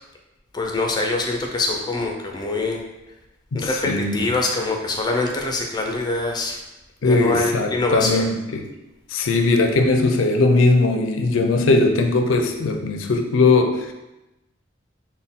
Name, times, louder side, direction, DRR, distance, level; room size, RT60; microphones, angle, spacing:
voice 1, 0.5-2.8 3.5-6.6 7.0-8.2, left 2 dB, 20° left, 2 dB, 0.4 m, -24 dB
voice 2, 3.5-4.3 7.0-8.7 9.1-13.9, left 3 dB, 90° left, 4 dB, 0.5 m, -19 dB
4.2 x 2.1 x 3.6 m, 0.98 s
head